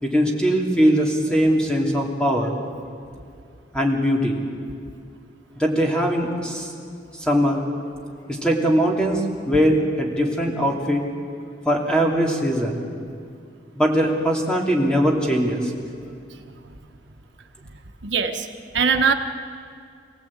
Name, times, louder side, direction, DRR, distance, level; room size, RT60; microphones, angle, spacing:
voice 1, 0.0-2.5 3.7-4.4 5.6-6.7 7.2-7.6 8.3-11.0 11.6-12.8 13.7-15.7, equal, 5° left, -1 dB, 2.9 m, -21 dB
voice 2, 18.0-18.5 18.7-19.1, right 6 dB, 80° right, 6 dB, 1.3 m, -20 dB
26.0 x 17.0 x 8.8 m, 2.3 s
head